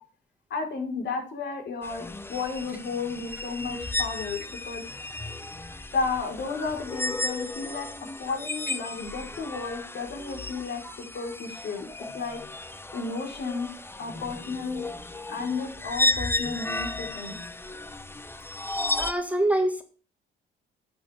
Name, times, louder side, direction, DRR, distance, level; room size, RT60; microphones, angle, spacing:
voice 1, 0.5-4.8 5.9-7.9 8.2-11.9 12.1-12.4 12.9-13.7 14.0-14.8 15.3-17.4, left 4 dB, 60° left, 2 dB, 4.4 m, -33 dB
sound 1, 1.8-19.1, left 2 dB, 10° left, 0.9 m, -34 dB
voice 2, 19.0-19.8, right 1 dB, 5° right, 6 dB, 1.8 m, -25 dB
10.5 x 8.8 x 3.5 m, 0.37 s
cardioid pair, 90°, 20 cm